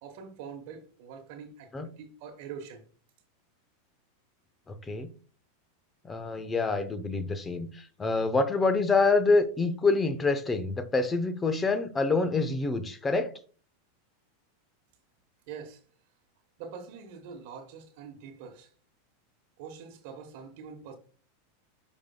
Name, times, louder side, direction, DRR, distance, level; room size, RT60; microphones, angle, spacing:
voice 1, 0.0-2.8 15.5-15.8 16.6-18.7 19.6-21.0, right 6 dB, 60° right, 1.2 m, -44 dB
voice 2, 4.7-5.1 6.0-13.3, left 3 dB, 20° left, 0.9 m, -26 dB
9.9 x 5.4 x 2.3 m
hypercardioid pair, 95°, 0 cm